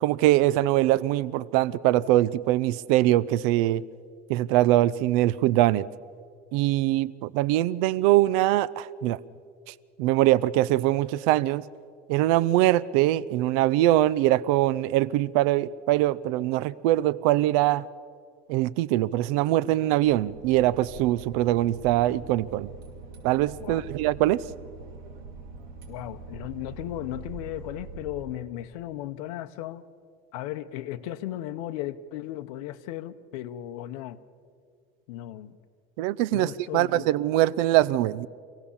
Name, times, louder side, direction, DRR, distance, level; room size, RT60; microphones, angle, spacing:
voice 1, 0.0-3.8 4.3-5.8 6.5-9.2 9.7-11.6 12.1-17.9 18.5-22.7 23.2-24.4 36.0-38.3, right 15 dB, 70° right, 0.5 m, -23 dB
Boat Water vehicle / Engine, 20.0-28.9, right 4 dB, 50° right, 4.8 m, -44 dB
voice 2, 25.9-29.8 30.3-34.2 35.1-35.6 36.3-37.1, left 13 dB, 80° left, 0.8 m, -36 dB
26.0 x 17.0 x 7.1 m
cardioid pair, 155°, 19 cm